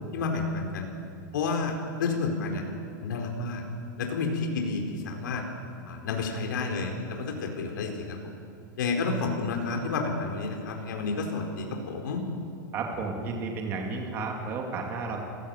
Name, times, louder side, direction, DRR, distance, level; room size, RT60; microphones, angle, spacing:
voice 1, 0.1-0.9 1.3-2.6 3.0-3.6 4.0-5.4 5.8-8.2 8.8-12.2, left 4 dB, 65° left, 2 dB, 4.4 m, -30 dB
voice 2, 12.7-15.2, right 4 dB, 20° right, 1 dB, 2.4 m, -32 dB
27.0 x 16.5 x 8.0 m, 2.4 s
supercardioid pair, 180°, 11 cm